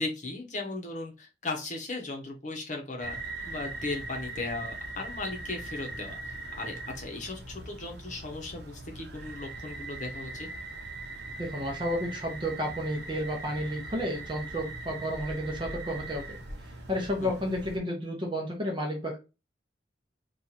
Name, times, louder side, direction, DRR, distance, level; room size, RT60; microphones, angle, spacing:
voice 1, 0.0-3.2 3.5-10.5 17.2-17.3, left 2 dB, 45° left, 2 dB, 0.9 m, -37 dB
sound 1, 3.0-17.8, right 2 dB, 65° right, 0.9 m, -40 dB
voice 2, 11.4-16.2 16.9-19.2, equal, 25° right, 1 dB, 0.8 m, -31 dB
2.9 x 2.5 x 4.0 m, 0.28 s
head